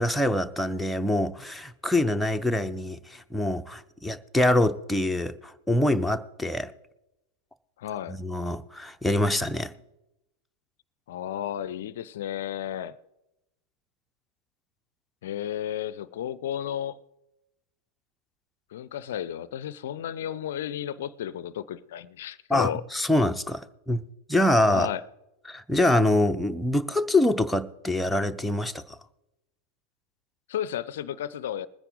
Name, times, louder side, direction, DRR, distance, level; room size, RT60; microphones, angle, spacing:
voice 1, 0.0-6.7 8.1-9.7 22.5-24.0 24.3-24.9 25.5-29.0, left 1 dB, 5° left, 0.6 m, -25 dB
voice 2, 7.8-8.2 11.1-13.0 15.2-17.0 18.7-22.8 24.7-25.0 30.5-31.7, left 10 dB, 55° left, 0.4 m, -33 dB
20.5 x 9.9 x 3.8 m
figure-of-eight pair, 90°, 0 cm